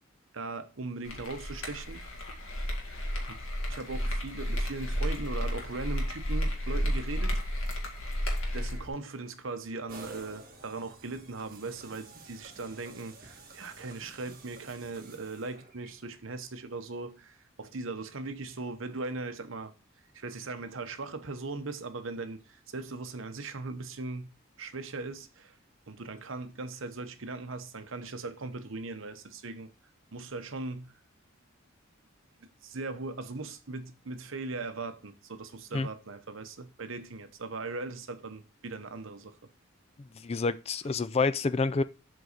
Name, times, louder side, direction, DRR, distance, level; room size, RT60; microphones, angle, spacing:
voice 1, 0.3-2.0 3.3-3.4 3.7-7.4 8.5-19.7 20.1-24.3 24.6-25.6 25.9-29.7 30.1-30.9 32.4-39.4, right 3 dB, 65° right, 0.9 m, -39 dB
sound 1, 1.0-8.9, equal, 80° left, 2.0 m, -32 dB
sound 2, 9.9-15.9, right 3 dB, 45° right, 1.5 m, -51 dB
voice 2, 40.2-41.8, left 4 dB, 30° left, 0.4 m, -28 dB
7.7 x 4.0 x 6.6 m
head